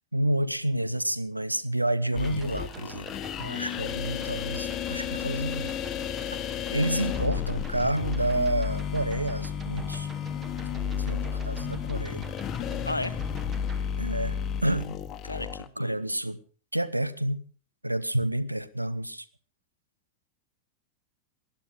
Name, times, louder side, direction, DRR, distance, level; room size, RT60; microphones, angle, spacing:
voice 1, 0.1-3.1 3.4-5.7 6.7-10.1 11.0-12.2 14.0-15.0 15.8-16.4 16.7-17.4 17.8-19.3, right 1 dB, 85° right, 0.9 m, -29 dB
sound 1, 2.1-15.7, left 8 dB, 30° left, 1.3 m, -32 dB
sound 2, 2.1-13.8, right 4 dB, 20° right, 1.8 m, -47 dB
voice 2, 6.7-7.2 12.8-13.2 15.2-16.2, left 2 dB, 85° left, 0.7 m, -35 dB
19.5 x 12.0 x 4.8 m
figure-of-eight pair, 90°, 0 cm